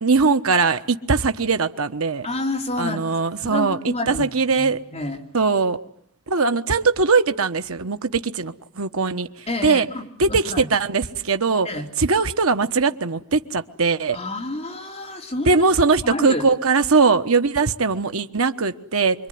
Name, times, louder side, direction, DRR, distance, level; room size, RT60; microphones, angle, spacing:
voice 1, 0.0-2.3 2.8-4.8 5.3-5.8 6.3-9.3 9.6-9.9 10.2-11.7 12.0-14.2 15.5-19.3, right 4 dB, 70° right, 8 dB, 1.2 m, -20 dB
voice 2, 2.2-3.0 3.4-4.7 4.9-5.2 9.5-10.7 11.6-11.9 14.1-15.6 16.0-16.4, left 1 dB, 30° left, 2 dB, 3.4 m, -29 dB
26.5 x 23.0 x 9.5 m, 0.67 s
head